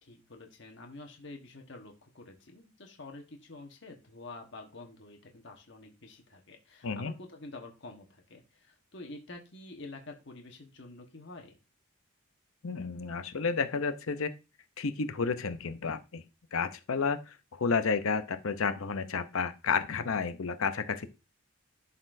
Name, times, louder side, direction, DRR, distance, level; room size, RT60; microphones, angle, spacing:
voice 1, 0.0-11.6, left 2 dB, 55° left, 1.3 m, -48 dB
voice 2, 12.6-14.3 14.8-16.2 16.5-21.1, left 5 dB, 75° left, 0.7 m, -31 dB
11.5 x 4.2 x 2.6 m
head